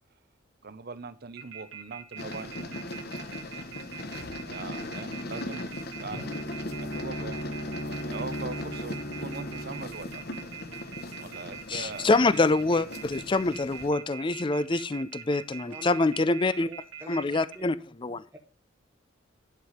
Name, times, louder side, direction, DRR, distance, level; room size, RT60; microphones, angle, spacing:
voice 1, 0.6-2.7 4.5-5.7 6.0-6.4 6.8-7.4 7.8-10.2 11.2-12.1, right 4 dB, 50° right, 14 dB, 0.6 m, -41 dB
Phone off the hook signal, 1.4-17.6, right 9 dB, 75° right, 1.6 m, -43 dB
sound 1, 2.1-13.9, left 1 dB, 55° left, 1.2 m, -39 dB
Bowed string instrument, 6.1-11.0, equal, 75° left, 2.6 m, -37 dB
voice 2, 11.7-16.7 17.1-18.2, left 3 dB, 25° left, 15 dB, 0.4 m, -25 dB
voice 3, 15.6-16.2 16.7-17.7 18.3-18.4, right 1 dB, 10° right, 1 dB, 1.0 m, -46 dB
10.5 x 4.8 x 4.9 m, 0.33 s
head